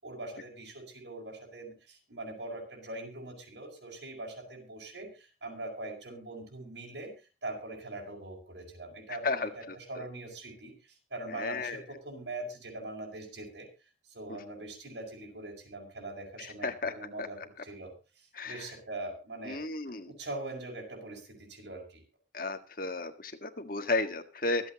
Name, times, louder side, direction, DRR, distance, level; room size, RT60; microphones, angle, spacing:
voice 1, 0.0-7.1 7.4-13.7 14.1-19.6 20.1-22.0, right 2 dB, 70° right, 0 dB, 6.4 m, -42 dB
voice 2, 11.3-11.8 16.6-16.9 17.2-17.3 18.3-18.6 19.5-20.1 22.3-24.7, left 3 dB, 50° left, 7 dB, 1.7 m, -33 dB
25.0 x 8.6 x 2.9 m, 0.31 s
head